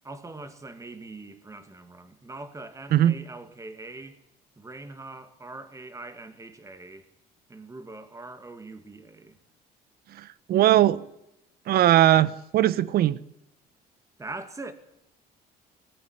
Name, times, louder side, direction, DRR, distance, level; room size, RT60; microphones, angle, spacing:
voice 1, 0.0-4.2 4.6-7.1 7.5-9.4 14.2-14.7, right 2 dB, 20° right, 2.4 m, -42 dB
voice 2, 10.1-11.1 11.7-13.2, right 13 dB, 65° right, 1.0 m, -20 dB
20.5 x 13.5 x 9.8 m
cardioid pair, 110°, 17 cm